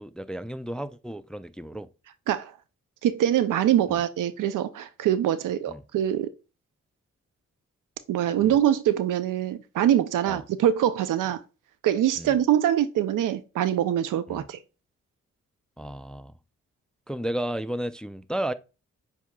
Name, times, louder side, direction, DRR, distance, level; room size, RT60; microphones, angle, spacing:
voice 1, 0.0-1.9 3.9-4.0 5.7-5.8 8.4-8.6 10.3-10.4 12.2-12.4 14.3-14.5 15.8-16.3 17.1-18.5, right 1 dB, 5° left, 0.3 m, -33 dB
voice 2, 3.0-6.3 8.1-11.4 11.8-14.6, right 11 dB, 85° right, 0.5 m, -24 dB
7.0 x 2.8 x 2.2 m
supercardioid pair, 50°, 31 cm